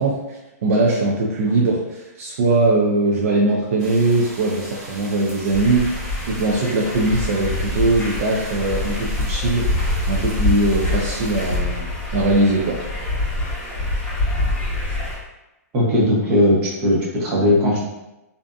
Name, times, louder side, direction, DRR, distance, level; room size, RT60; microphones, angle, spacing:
voice 1, 0.0-5.9 6.3-9.6 10.1-12.8, right 2 dB, 60° right, -3 dB, 0.5 m, -20 dB
sound 1, 3.8-11.6, right 1 dB, 80° right, 1.1 m, -39 dB
sound 2, 5.5-15.1, left 2 dB, 10° left, 1.1 m, -25 dB
voice 2, 15.7-17.8, left 1 dB, 25° right, -6 dB, 0.8 m, -18 dB
2.6 x 2.5 x 2.2 m, 0.99 s
hypercardioid pair, 160°, 9 cm